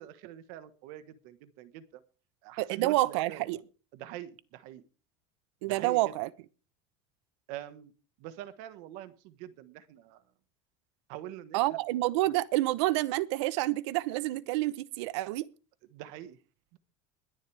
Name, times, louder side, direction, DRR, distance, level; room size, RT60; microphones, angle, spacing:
voice 1, 0.0-2.0 2.4-3.4 3.9-4.8 5.7-6.1 7.5-7.9 8.2-10.3 11.1-11.8 12.2-12.3 15.9-16.4 16.7-16.8, right 12 dB, 65° right, 1.4 m, -44 dB
voice 2, 2.6-3.6 5.6-6.3 11.5-15.5, right 18 dB, 85° right, 0.9 m, -28 dB
21.5 x 10.5 x 3.4 m
cardioid pair, 155°, 14 cm